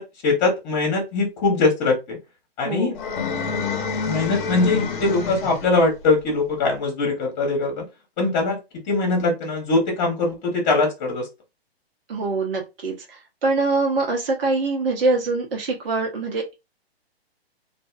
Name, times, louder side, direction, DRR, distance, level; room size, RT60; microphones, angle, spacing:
voice 1, 0.0-2.2 2.6-3.0 4.0-7.8 8.2-8.6 8.9-11.3, left 3 dB, 30° left, 1 dB, 1.0 m, -22 dB
voice 2, 2.6-3.0 12.1-16.5, right 3 dB, 65° right, 0 dB, 1.1 m, -24 dB
sound 1, 2.9-5.8, left 4 dB, 50° left, 0.7 m, -27 dB
2.6 x 2.3 x 2.3 m, 0.24 s
hypercardioid pair, 130°, 31 cm